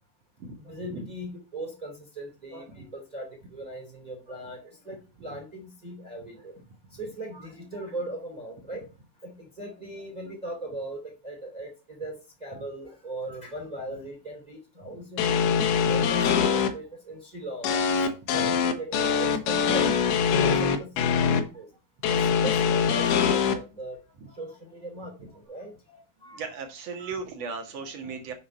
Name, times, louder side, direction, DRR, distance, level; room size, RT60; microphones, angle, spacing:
voice 1, 0.6-6.5 6.9-8.8 9.2-15.4 15.8-17.8 18.3-21.7 22.1-24.0 24.3-26.4 27.0-27.5 28.0-28.3, right 1 dB, 15° right, 1 dB, 1.6 m, -39 dB
sound 1, 15.2-16.7 17.6-21.4 22.0-23.5, left 6 dB, 70° left, 2.7 m, -23 dB
voice 2, 26.3-28.3, right 4 dB, 55° right, 4 dB, 1.9 m, -36 dB
7.5 x 5.7 x 4.4 m, 0.31 s
omnidirectional pair, 5.2 m